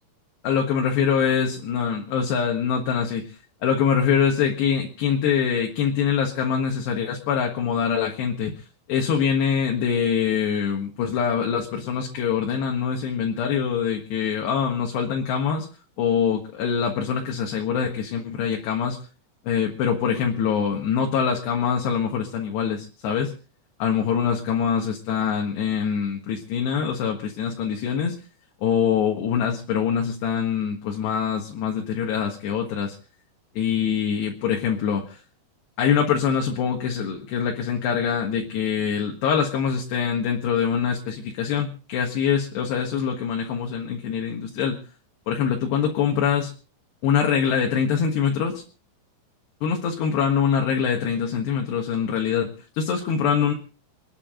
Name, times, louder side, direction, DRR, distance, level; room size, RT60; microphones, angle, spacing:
voice 1, 0.4-15.7 16.0-19.0 19.5-23.3 23.8-28.2 28.6-33.0 33.6-35.2 35.8-44.8 45.3-46.5 47.0-48.6 49.6-53.5, left 7 dB, 65° left, 1 dB, 3.5 m, -24 dB
27.5 x 9.9 x 3.8 m, 0.36 s
omnidirectional pair, 5.6 m